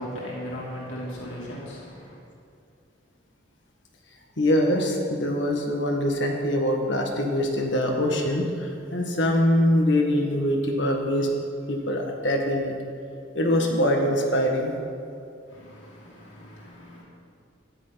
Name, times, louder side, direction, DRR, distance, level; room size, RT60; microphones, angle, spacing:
voice 1, 0.0-2.1 15.5-17.0, equal, 85° left, -5 dB, 2.8 m, -37 dB
voice 2, 4.4-11.3 11.7-12.7 13.3-14.7, left 1 dB, 70° left, 1 dB, 1.6 m, -23 dB
14.5 x 10.5 x 4.1 m, 2.5 s
head